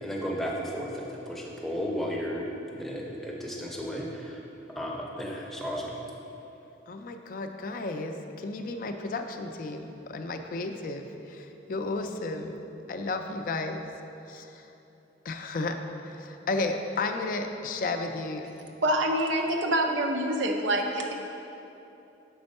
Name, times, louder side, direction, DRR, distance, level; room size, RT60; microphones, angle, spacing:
voice 1, 0.0-2.5 2.7-4.4 4.7-6.0, equal, ahead, -2 dB, 0.6 m, -34 dB
voice 2, 6.9-13.9 14.3-14.7 15.2-18.5, left 3 dB, 45° left, 5 dB, 0.4 m, -33 dB
voice 3, 18.8-21.1, right 1 dB, 80° right, 3 dB, 0.6 m, -26 dB
6.1 x 4.3 x 5.3 m, 2.9 s
head